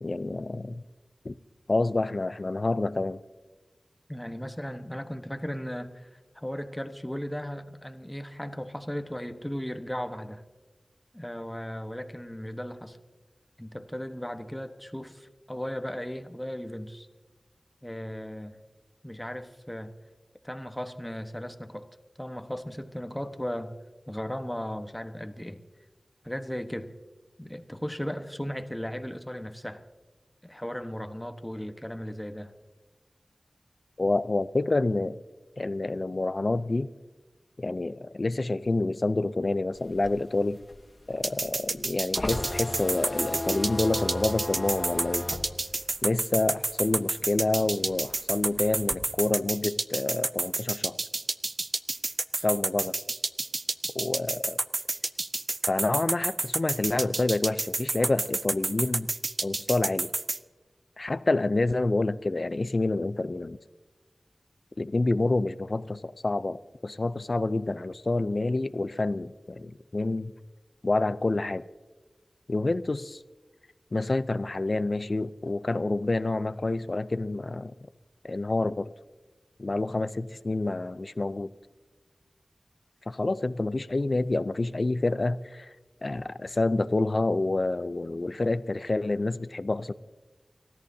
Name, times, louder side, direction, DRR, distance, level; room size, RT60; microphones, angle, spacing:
voice 1, 0.0-0.8 1.2-1.3 1.7-3.2 34.0-35.2 35.6-36.9 37.6-40.6 41.1-45.3 46.0-51.0 52.4-52.9 53.9-54.6 55.7-59.1 59.4-60.1 61.0-63.6 64.8-70.3 70.8-71.6 72.5-73.2 73.9-77.7 78.2-78.9 79.6-81.5 83.1-85.7 86.0-89.9, left 2 dB, 55° left, 15 dB, 0.5 m, -28 dB
voice 2, 4.1-6.1 6.3-10.4 11.1-13.0 13.6-17.1 17.8-18.6 19.0-19.9 20.4-21.9 22.2-23.8 24.1-25.6 26.2-26.9 27.4-29.8 30.4-32.5, equal, 10° left, 8 dB, 1.2 m, -36 dB
sound 1, 39.8-46.9 47.2-49.0, left 1 dB, 40° left, 1.8 m, -35 dB
sound 2, 41.2-60.4, right 2 dB, 55° right, 0.4 m, -29 dB
29.5 x 14.0 x 2.8 m, 1.2 s
wide cardioid pair, 45°, 0 cm